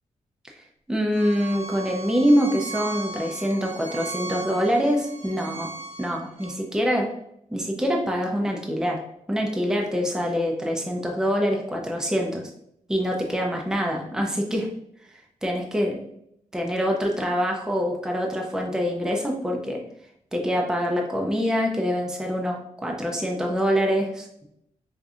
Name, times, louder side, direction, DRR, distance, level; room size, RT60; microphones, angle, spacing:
voice 1, 0.9-5.7 6.0-7.1 7.5-9.0 9.3-12.5 12.9-14.7 15.4-16.1 16.5-19.8 20.3-24.3, equal, 5° right, 1 dB, 0.5 m, -25 dB
Bowed string instrument, 1.1-6.5, right 3 dB, 45° right, 0.9 m, -37 dB
4.8 x 2.6 x 2.4 m, 0.74 s
wide cardioid pair, 130°, 13 cm